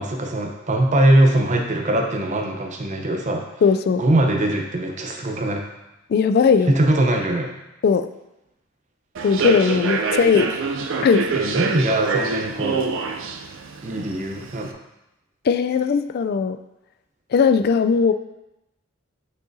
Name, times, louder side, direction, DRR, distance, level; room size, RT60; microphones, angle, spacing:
voice 1, 0.0-3.6 4.0-5.6 6.7-7.6 11.3-12.8 13.8-14.7, right 1 dB, 35° right, 2 dB, 0.7 m, -21 dB
voice 2, 3.6-4.0 6.1-6.7 7.8-8.1 9.2-10.5 11.0-11.3 15.4-16.6 17.3-18.1, left 5 dB, 50° left, 10 dB, 0.3 m, -18 dB
Human voice / Subway metro underground, 9.1-14.7, right 4 dB, 65° right, 0.4 m, -26 dB
6.3 x 5.5 x 2.7 m, 0.93 s
head